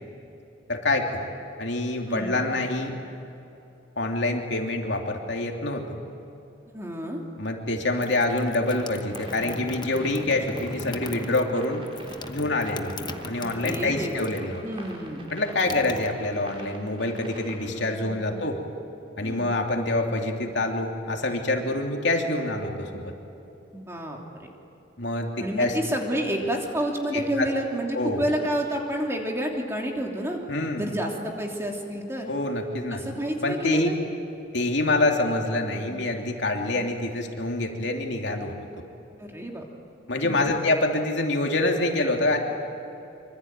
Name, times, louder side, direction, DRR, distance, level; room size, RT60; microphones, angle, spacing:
voice 1, 0.7-1.3 1.6-3.0 4.0-5.8 7.4-11.9 12.3-14.6 15.3-18.6 19.2-23.1 25.0-25.8 27.1-27.5 27.9-28.2 30.5-30.8 32.3-33.0 33.4-33.9 34.5-38.6 40.1-42.4, left 2 dB, 65° left, 2 dB, 3.0 m, -26 dB
voice 2, 2.1-2.5 6.7-7.2 13.4-14.3 14.6-15.3 17.8-18.4 19.2-19.5 23.7-24.2 25.4-30.4 30.8-32.3 32.9-33.9 39.2-39.6 40.2-40.5, equal, 15° right, 0 dB, 3.1 m, -30 dB
sound 1, 8.0-14.5 14.8-16.7, left 2 dB, 20° left, 0.9 m, -39 dB
sound 2, 8.3-18.0, right 1 dB, 30° right, 5.1 m, -46 dB
25.5 x 25.5 x 9.1 m, 2.9 s
head